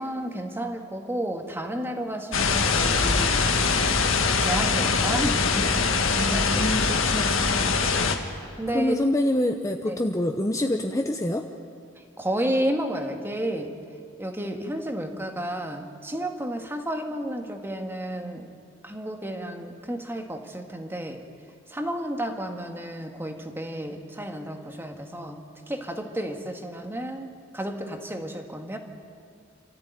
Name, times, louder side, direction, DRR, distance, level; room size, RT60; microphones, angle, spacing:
voice 1, 0.0-3.6 4.4-5.7 6.3-6.7 8.6-9.1 9.9-10.0 11.9-13.8 14.2-18.5 18.8-21.2 21.7-28.8, right 1 dB, 10° right, 4 dB, 1.7 m, -32 dB
sound 1, 2.3-8.2, left 4 dB, 80° left, 1.7 m, -23 dB
voice 2, 6.1-7.8 8.7-11.4, left 1 dB, 15° left, 4 dB, 0.8 m, -26 dB
28.5 x 14.0 x 9.2 m, 2.3 s
head